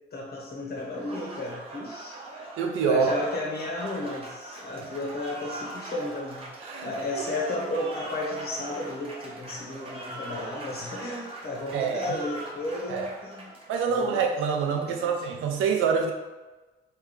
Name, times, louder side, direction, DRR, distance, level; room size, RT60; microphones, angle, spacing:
voice 1, 0.1-2.2 2.8-6.5 6.8-13.5 13.9-14.2 15.0-15.1, left 2 dB, 55° left, -3 dB, 1.3 m, -33 dB
Applause, 0.8-14.4, right 2 dB, 30° right, 1.0 m, -41 dB
voice 2, 2.6-3.2 6.6-7.2 11.7-12.0 12.9-13.1 13.7-16.1, right 6 dB, 90° right, 3 dB, 0.6 m, -26 dB
3.3 x 3.3 x 3.3 m, 1.2 s
cardioid pair, 90°, 20 cm